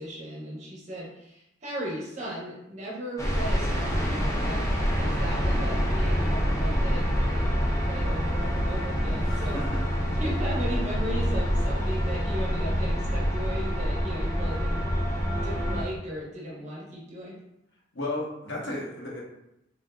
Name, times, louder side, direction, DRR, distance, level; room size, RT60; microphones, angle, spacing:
voice 1, 0.0-9.6 10.1-14.8 15.3-17.4, right 1 dB, 40° right, -4 dB, 0.8 m, -37 dB
sound 1, 3.2-15.8, equal, 15° left, 0.5 m, -26 dB
voice 2, 9.2-9.8 17.9-19.2, left 2 dB, 65° left, -4 dB, 0.9 m, -34 dB
3.5 x 2.6 x 2.2 m, 0.83 s
head